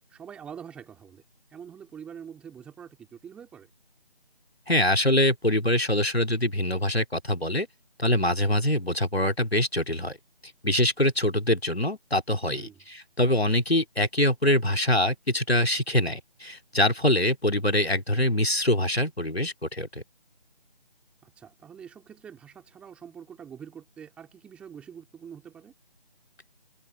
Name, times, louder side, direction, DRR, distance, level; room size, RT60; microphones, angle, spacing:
voice 1, 0.1-1.2 1.5-3.7 12.5-12.8 21.2-25.7, right 8 dB, 5° right, 3.4 m, -45 dB
voice 2, 4.7-7.7 8.0-10.2 10.6-20.0, left 1 dB, 85° left, 3.4 m, -24 dB
figure-of-eight pair, 160°, 31 cm